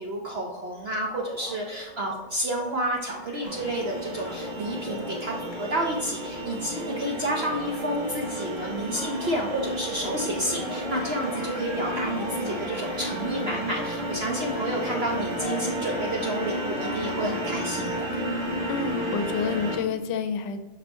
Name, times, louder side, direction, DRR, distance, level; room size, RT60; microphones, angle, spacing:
voice 1, 0.0-18.2, right 1 dB, 55° right, 0 dB, 0.7 m, -30 dB
sound 1, 0.8-17.5, left 2 dB, 25° left, 0.9 m, -43 dB
sound 2, 3.4-19.8, equal, 20° right, 0.9 m, -32 dB
voice 2, 18.7-20.6, left 5 dB, 85° left, 9 dB, 1.3 m, -28 dB
5.4 x 5.3 x 4.2 m, 1.1 s
omnidirectional pair, 1.9 m